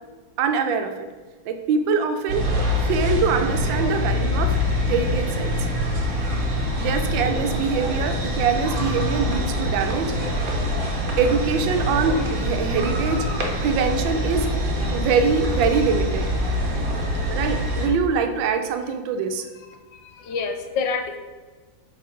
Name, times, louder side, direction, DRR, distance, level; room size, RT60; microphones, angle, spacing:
voice 1, 0.4-0.9 1.5-2.4 2.8-4.6 4.9-5.7 6.8-10.1 11.2-13.3 13.6-14.5 14.9-16.3 17.3-19.4, right 5 dB, 75° right, 7 dB, 1.3 m, -23 dB
sound 1, 2.3-17.9, left 1 dB, 55° right, 1.1 m, -24 dB
voice 2, 19.9-21.2, left 5 dB, 70° left, 5 dB, 1.3 m, -27 dB
6.9 x 3.4 x 5.0 m, 1.4 s
omnidirectional pair, 2.2 m